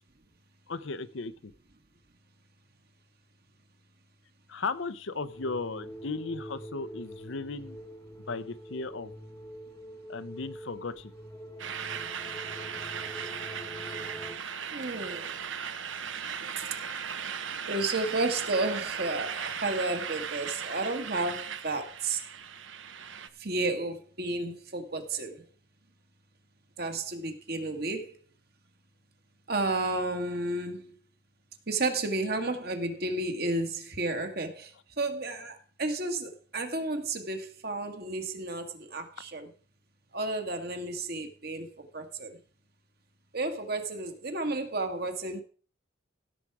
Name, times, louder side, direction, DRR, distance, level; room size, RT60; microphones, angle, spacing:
voice 1, 0.7-1.5 4.5-7.8 8.3-9.1 10.1-11.1, left 3 dB, 65° left, 0.7 m, -36 dB
sound 1, 5.3-14.4, equal, 15° left, 1.0 m, -45 dB
sound 2, 11.6-23.3, right 7 dB, 70° right, 1.1 m, -37 dB
voice 2, 14.7-15.3 17.7-22.2 23.4-25.4 26.8-28.1 29.5-30.9 31.7-39.5 40.1-42.4 43.3-45.4, right 2 dB, 50° right, 1.8 m, -32 dB
16.0 x 7.3 x 4.8 m
head